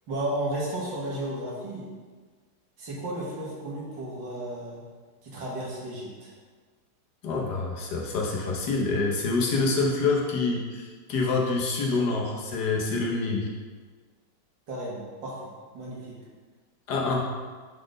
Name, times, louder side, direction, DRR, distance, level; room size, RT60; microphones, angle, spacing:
voice 1, 0.1-1.9 2.8-4.8 5.2-6.3 14.7-15.4 15.7-16.2, right 1 dB, 75° right, -4 dB, 2.1 m, -33 dB
voice 2, 7.2-13.5 16.9-17.4, left 3 dB, 65° left, -1 dB, 1.4 m, -26 dB
5.1 x 4.1 x 4.9 m, 1.5 s
omnidirectional pair, 2.0 m